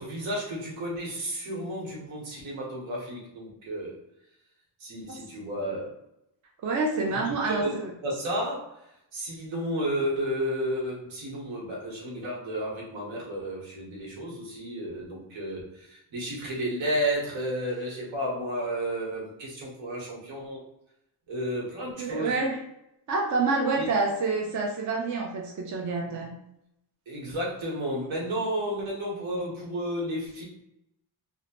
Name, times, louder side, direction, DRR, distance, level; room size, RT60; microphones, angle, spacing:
voice 1, 0.0-3.9 4.8-5.9 7.1-7.7 8.0-8.8 9.1-20.6 21.3-22.3 23.8-23.9 27.1-30.4, equal, 75° right, -3 dB, 1.2 m, -32 dB
voice 2, 6.6-7.9 22.0-22.6 23.1-26.3, right 3 dB, 40° right, 0 dB, 0.5 m, -27 dB
2.9 x 2.1 x 2.9 m, 0.84 s
wide cardioid pair, 170°, 46 cm